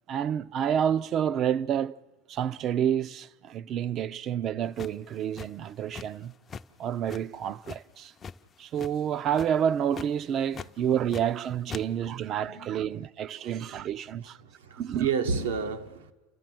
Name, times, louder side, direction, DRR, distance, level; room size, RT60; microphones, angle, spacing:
voice 1, 0.1-2.0 2.3-6.3 6.8-8.1 8.6-14.4 14.7-15.1, right 9 dB, 45° right, 0.6 m, -29 dB
sound 1, 4.8-6.2 6.5-6.7 7.1-8.4 8.7-9.1 9.3-9.6 9.9-10.1 10.5-11.4 11.7-11.8, left 6 dB, 30° left, 0.6 m, -41 dB
voice 2, 12.5-12.8 13.4-13.6 14.4-16.1, right 6 dB, 85° right, 1.2 m, -31 dB
30.0 x 13.5 x 7.7 m
hypercardioid pair, 95°, 0 cm